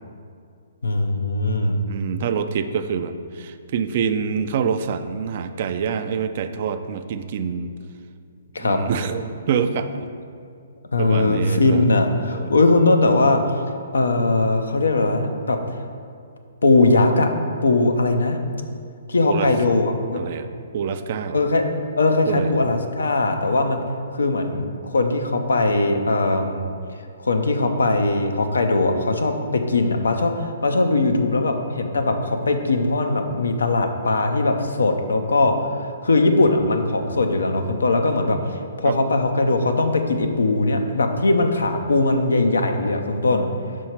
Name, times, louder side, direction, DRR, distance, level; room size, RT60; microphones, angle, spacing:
voice 1, 0.8-1.8 8.5-8.8 10.9-13.4 13.9-15.6 16.6-17.3 17.6-18.4 19.1-20.2 21.3-21.6 21.9-23.8 24.1-26.7 27.2-35.7 36.0-43.5, left 2 dB, 85° left, 5 dB, 0.6 m, -20 dB
voice 2, 1.9-7.7 8.6-10.1 11.0-11.9 12.3-12.5 19.2-19.5 20.1-20.5 20.7-21.4 22.3-22.7 38.8-39.0, right 6 dB, 50° right, 10 dB, 0.3 m, -26 dB
5.6 x 4.5 x 4.5 m, 2.3 s
hypercardioid pair, 135°, 0 cm